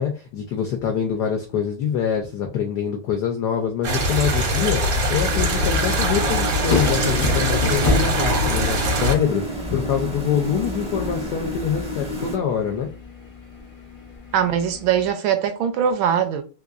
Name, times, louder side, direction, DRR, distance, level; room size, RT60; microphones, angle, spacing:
voice 1, 0.0-4.8 5.1-12.9, left 8 dB, 85° left, 0.9 m, -25 dB
sound 1, 3.8-9.1, equal, 60° right, 1.4 m, -22 dB
sound 2, 4.5-15.1, left 3 dB, 60° left, 0.5 m, -31 dB
sound 3, 5.3-12.4, right 1 dB, 10° right, 0.4 m, -30 dB
voice 2, 14.3-16.4, right 8 dB, 75° right, 1.3 m, -21 dB
3.6 x 3.0 x 2.4 m
omnidirectional pair, 2.4 m